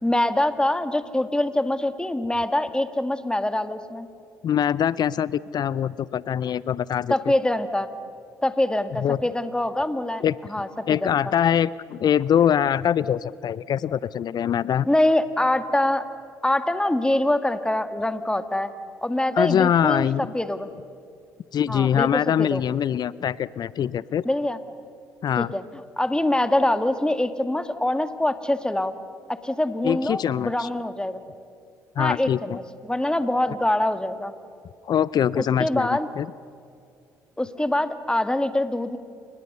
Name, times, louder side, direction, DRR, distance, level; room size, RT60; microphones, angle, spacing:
voice 1, 0.0-4.1 7.1-7.9 8.4-10.7 11.0-11.1 14.9-16.0 16.4-18.7 19.0-20.1 20.3-20.7 21.7-22.6 24.3-24.6 25.4-25.6 26.0-28.9 29.3-31.2 32.0-34.3 35.4-36.1 37.4-39.0, left 1 dB, 10° left, 10 dB, 2.0 m, -24 dB
voice 2, 4.4-7.1 9.0-9.2 10.2-10.4 10.9-14.9 19.4-20.3 21.5-24.2 25.2-25.5 29.8-30.7 32.0-32.6 34.8-36.3, left 9 dB, 50° left, 20 dB, 0.6 m, -23 dB
29.5 x 24.5 x 6.8 m, 2.4 s
hypercardioid pair, 50°, 9 cm